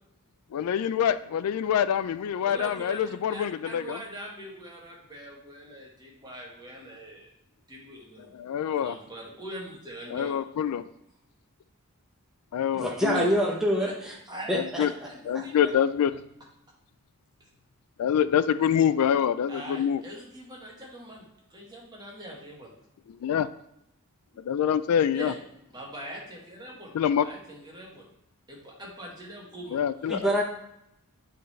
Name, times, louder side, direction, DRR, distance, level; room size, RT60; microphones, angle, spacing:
voice 1, 0.5-4.0 8.3-9.0 10.1-10.8 12.5-13.3 14.5-14.9 15.2-16.1 18.0-20.0 23.1-23.5 24.4-25.3 26.9-27.3 29.7-30.3, left 8 dB, 85° left, 14 dB, 0.3 m, -26 dB
voice 2, 2.4-7.3 7.7-8.3 8.8-10.4 13.1-13.3 13.8-13.9 14.3-14.6 15.0-15.7 19.5-22.7 25.1-25.3 25.7-28.1 28.5-29.8, right 1 dB, 20° right, -3 dB, 1.5 m, -42 dB
voice 3, 12.7-14.2 14.5-14.9 30.1-30.4, equal, ahead, -3 dB, 0.7 m, -26 dB
9.3 x 3.9 x 3.2 m, 0.80 s
head